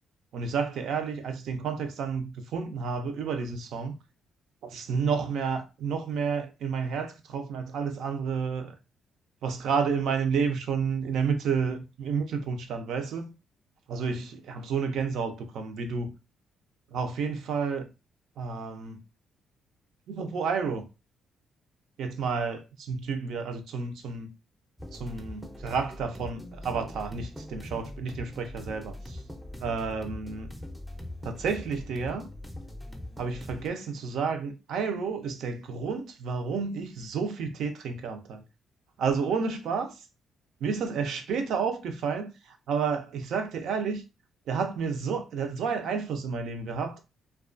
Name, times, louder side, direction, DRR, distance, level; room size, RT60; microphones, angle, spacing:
voice 1, 0.3-4.0 4.6-8.7 9.4-13.3 13.9-16.2 16.9-17.9 18.4-19.0 20.1-20.9 22.0-24.3 24.9-29.2 29.6-30.5 31.2-32.3 33.2-38.4 39.0-39.9 40.6-44.0 44.5-47.0, right 5 dB, 75° right, 0.4 m, -30 dB
sound 1, 24.8-33.7, left 1 dB, 5° right, 0.5 m, -41 dB
2.3 x 2.2 x 2.4 m
cardioid pair, 90°, 0 cm